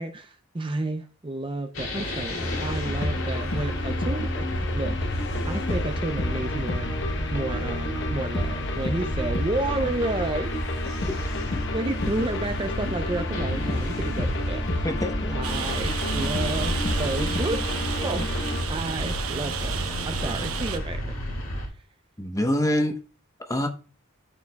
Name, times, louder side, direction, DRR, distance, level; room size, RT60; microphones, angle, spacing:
voice 1, 0.0-6.9 7.3-10.5 11.7-14.9 15.3-17.6 18.0-18.3 18.7-19.8 20.1-21.1 21.6-21.7, right 2 dB, 25° right, 0.5 m, -31 dB
sound 1, 1.7-21.7, equal, 75° left, 2.4 m, -32 dB
sound 2, 2.4-18.6, left 1 dB, 55° left, 1.0 m, -30 dB
voice 2, 14.8-15.4 20.2-20.3 22.2-23.0 23.4-23.7, left 1 dB, 15° left, 0.9 m, -25 dB
Rain, 15.4-20.8, right 7 dB, 80° right, 1.0 m, -32 dB
13.5 x 4.8 x 2.3 m
head